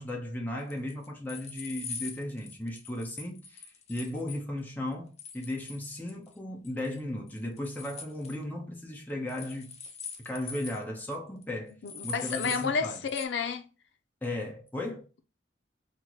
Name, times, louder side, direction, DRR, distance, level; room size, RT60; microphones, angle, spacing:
voice 1, 0.0-9.8 10.2-11.7 12.0-13.0 14.2-15.0, left 1 dB, 10° left, 0.9 m, -36 dB
sound 1, 0.7-4.4 5.2-6.4 6.6-7.0 7.3-8.4 9.3-10.8 11.1-11.2 11.4-11.5 11.9-12.7 13.1-13.3, left 5 dB, 35° left, 0.6 m, -42 dB
voice 2, 11.8-13.6, left 5 dB, 80° left, 0.5 m, -31 dB
4.3 x 2.1 x 3.0 m
head